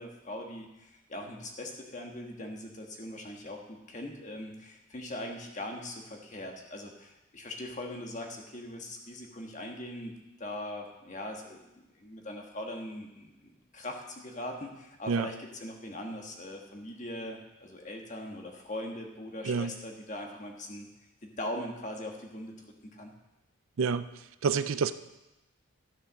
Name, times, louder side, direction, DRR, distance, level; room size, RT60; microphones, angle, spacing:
voice 1, 0.0-10.1 10.4-20.9 21.2-22.5 22.9-23.1, left 1 dB, 35° left, 2 dB, 1.5 m, -41 dB
voice 2, 23.8-24.1 24.4-24.9, right 5 dB, 70° right, 13 dB, 0.4 m, -27 dB
12.5 x 6.8 x 6.3 m, 0.97 s
head